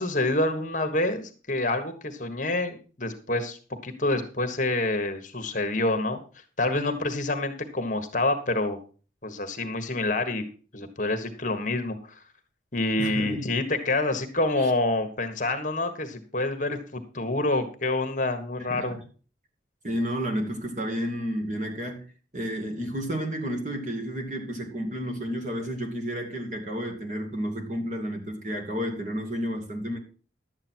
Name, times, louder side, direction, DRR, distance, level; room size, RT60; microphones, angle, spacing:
voice 1, 0.0-3.6 3.8-6.2 6.6-8.8 9.2-10.4 10.7-12.1 12.7-19.0, left 2 dB, 45° left, 1.5 m, -27 dB
voice 2, 13.0-13.5 14.6-14.7 18.6-19.0 19.8-22.0 22.3-30.0, equal, 40° right, 2.5 m, -31 dB
12.0 x 8.8 x 4.5 m
head